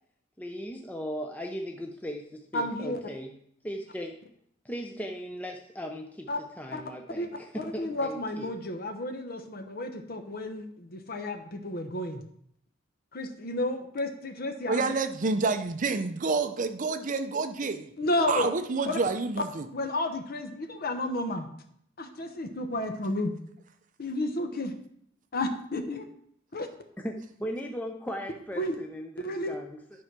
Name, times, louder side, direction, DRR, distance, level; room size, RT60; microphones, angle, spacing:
voice 1, 0.4-3.3 3.6-4.2 4.6-6.3 6.6-8.6 27.0-27.1 27.4-29.8, equal, 10° left, 2 dB, 0.6 m, -37 dB
voice 2, 2.5-3.0 6.3-6.4 6.7-6.8 7.1-7.3 7.5-12.2 13.1-14.9 18.0-18.5 18.9-19.0 19.7-21.5 22.0-23.3 24.0-24.7 25.3-26.0 26.5-26.7 28.6-28.7 29.2-29.5, left 1 dB, 50° left, 6 dB, 0.8 m, -31 dB
voice 3, 14.7-17.9 18.3-19.7, right 4 dB, 40° right, 9 dB, 0.5 m, -28 dB
10.5 x 4.6 x 6.0 m, 0.69 s
head